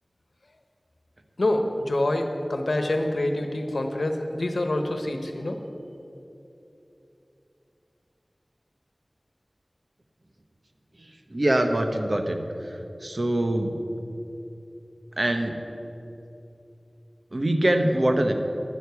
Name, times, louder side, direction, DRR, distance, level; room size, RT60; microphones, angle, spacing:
voice 1, 1.4-5.6, left 1 dB, 80° left, 5 dB, 1.1 m, -26 dB
voice 2, 11.3-12.4 13.0-13.7 15.2-15.5 17.3-18.3, right 1 dB, 55° right, 5 dB, 1.1 m, -23 dB
11.5 x 9.5 x 7.0 m, 3.0 s
wide cardioid pair, 45°, 0 cm